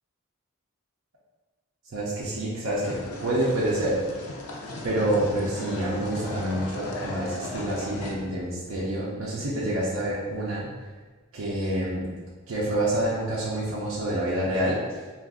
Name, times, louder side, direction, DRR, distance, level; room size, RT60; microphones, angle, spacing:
voice 1, 1.9-4.0 4.8-10.7 11.3-12.1 12.5-14.8, right 1 dB, 65° right, -6 dB, 0.5 m, -27 dB
sound 1, 2.8-8.2, left 1 dB, 90° left, 0.5 m, -37 dB
2.5 x 2.3 x 3.5 m, 1.3 s
head